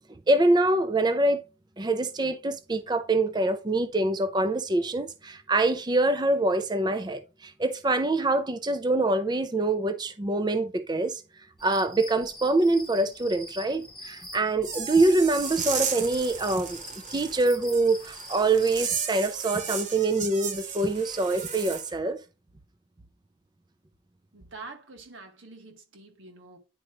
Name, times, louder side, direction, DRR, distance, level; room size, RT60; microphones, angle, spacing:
voice 1, 0.3-1.4 1.8-11.2 11.6-16.8 17.1-22.2, right 2 dB, 20° right, 0.5 m, -25 dB
sound 1, 11.6-19.0, left 1 dB, ahead, 1.0 m, -45 dB
sound 2, 14.6-21.9, right 6 dB, 40° right, 1.2 m, -35 dB
voice 2, 24.3-26.6, right 3 dB, 85° right, 1.9 m, -46 dB
9.8 x 4.8 x 3.0 m
head